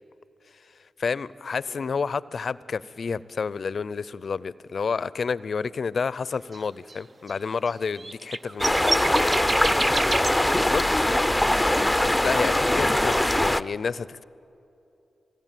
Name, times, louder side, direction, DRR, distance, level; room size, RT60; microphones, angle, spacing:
voice 1, 1.0-9.0 10.5-10.8 12.2-14.2, left 5 dB, 60° left, 19 dB, 0.5 m, -29 dB
voice 2, 1.7-1.9, right 1 dB, 60° right, -1 dB, 4.4 m, -49 dB
sound 1, 6.5-6.6 6.9-7.0 7.3-7.4 7.7-7.8 8.0-10.3, right 2 dB, 45° right, 0.7 m, -28 dB
sound 2, 8.6-13.6, left 1 dB, 10° left, 0.6 m, -22 dB
21.0 x 17.5 x 9.1 m, 2.9 s
cardioid pair, 50°, 0 cm